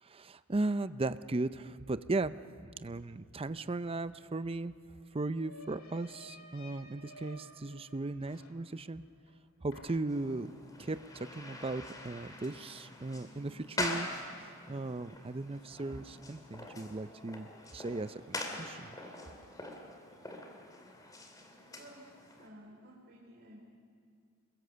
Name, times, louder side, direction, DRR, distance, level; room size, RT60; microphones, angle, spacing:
voice 1, 0.0-2.4 2.8-4.7 5.1-9.0 9.6-10.5 10.8-14.1 14.7-19.0, right 2 dB, 25° right, 13 dB, 0.6 m, -37 dB
sound 1, 3.8-3.9 4.2-9.4 9.7-10.5, left 1 dB, 75° left, 2.3 m, -55 dB
sound 2, 10.1-22.5, left 1 dB, 20° left, 2.5 m, -44 dB
voice 2, 22.4-23.6, right 1 dB, 55° right, -3 dB, 3.4 m, -54 dB
28.0 x 22.5 x 6.9 m, 2.3 s
head